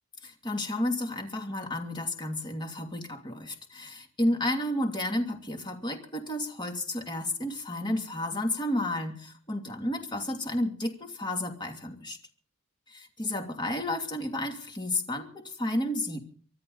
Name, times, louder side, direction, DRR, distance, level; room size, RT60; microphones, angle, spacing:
voice 1, 0.2-12.2 12.9-16.2, left 1 dB, 20° left, 3 dB, 2.7 m, -32 dB
24.5 x 13.0 x 4.0 m, 0.44 s
head